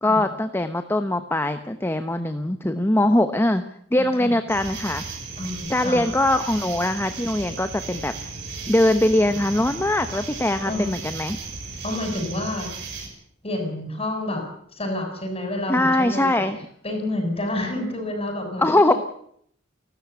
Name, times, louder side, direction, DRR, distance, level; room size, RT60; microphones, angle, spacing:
voice 1, 0.0-3.6 3.9-5.0 5.7-8.1 8.7-11.4 15.7-16.6 18.6-18.9, left 1 dB, 10° left, 9 dB, 1.0 m, -21 dB
voice 2, 3.9-4.3 5.4-6.0 10.7-10.8 11.8-12.7 13.4-14.4 14.7-16.3 16.8-19.0, left 1 dB, 30° left, 5 dB, 7.1 m, -29 dB
sound 1, 4.5-13.1, right 4 dB, 60° right, 7.3 m, -35 dB
29.5 x 13.0 x 8.3 m, 0.66 s
head